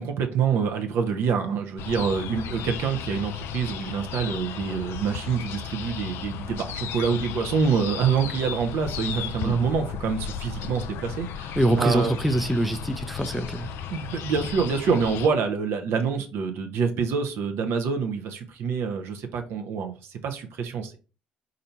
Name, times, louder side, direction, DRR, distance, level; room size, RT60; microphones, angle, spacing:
voice 1, 0.0-12.2 13.9-21.0, right 6 dB, 60° right, 0.7 m, -26 dB
sound 1, 1.8-15.3, left 8 dB, 60° left, 0.4 m, -35 dB
voice 2, 11.6-13.7, right 1 dB, ahead, 0.5 m, -24 dB
4.4 x 2.6 x 4.1 m
figure-of-eight pair, 50°, 5 cm